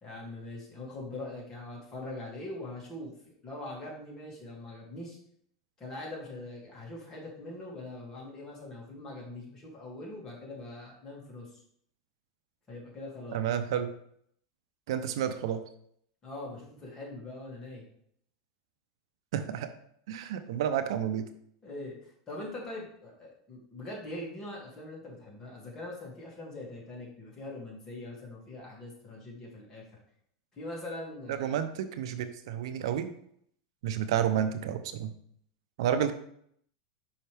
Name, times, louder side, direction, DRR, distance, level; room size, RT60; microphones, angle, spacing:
voice 1, 0.0-5.2 5.8-11.6 12.7-13.4 16.2-17.9 21.6-29.8 30.5-31.6, left 2 dB, 25° left, -3 dB, 2.3 m, -42 dB
voice 2, 13.3-13.9 14.9-15.6 19.3-19.7 20.1-21.3 31.3-33.1 33.8-35.1 35.8-36.1, right 9 dB, 75° right, 10 dB, 0.6 m, -30 dB
5.6 x 5.4 x 3.4 m, 0.67 s
supercardioid pair, 135°, 3 cm